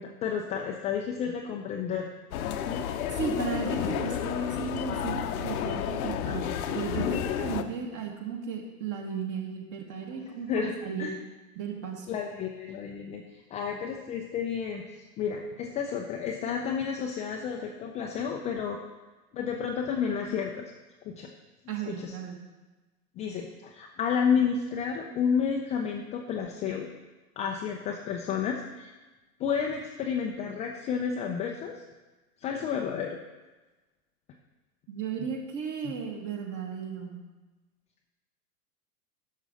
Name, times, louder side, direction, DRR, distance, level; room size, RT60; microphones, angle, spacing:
voice 1, 0.0-2.1 2.4-2.9 10.1-11.1 12.1-13.2 13.5-18.8 19.3-20.7 21.0-21.3 21.9-22.1 23.2-26.9 27.4-28.9 29.4-31.8 32.4-33.2 35.2-35.3 35.8-35.9, left 7 dB, 15° left, 1 dB, 0.4 m, -31 dB
sound 1, 2.3-7.6, left 9 dB, 60° left, 0.8 m, -31 dB
voice 2, 3.1-11.1 11.6-12.1 21.7-22.4 34.9-37.2, right 6 dB, 40° right, 1 dB, 2.0 m, -35 dB
11.5 x 6.3 x 3.9 m, 1.2 s
hypercardioid pair, 95°, 47 cm